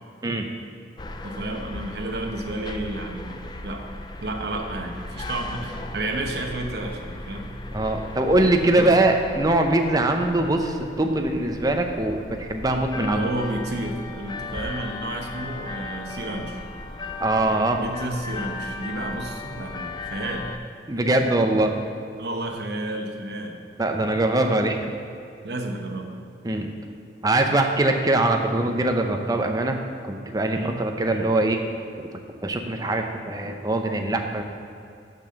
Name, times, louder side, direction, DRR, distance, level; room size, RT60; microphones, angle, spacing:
sound 1, 1.0-20.6, left 3 dB, 25° left, 0.4 m, -37 dB
voice 1, 1.2-3.8 4.2-7.6 8.7-8.9 12.9-16.6 17.8-20.5 22.2-23.6 25.4-26.1 30.5-30.8, right 2 dB, 65° right, 2 dB, 1.0 m, -31 dB
voice 2, 7.7-13.2 17.2-17.8 20.9-21.7 23.8-24.8 26.4-26.7 27.2-29.8 30.0-31.6 32.0-32.1 32.4-34.4, right 2 dB, 20° right, 4 dB, 0.6 m, -22 dB
6.9 x 6.1 x 6.6 m, 2.5 s
head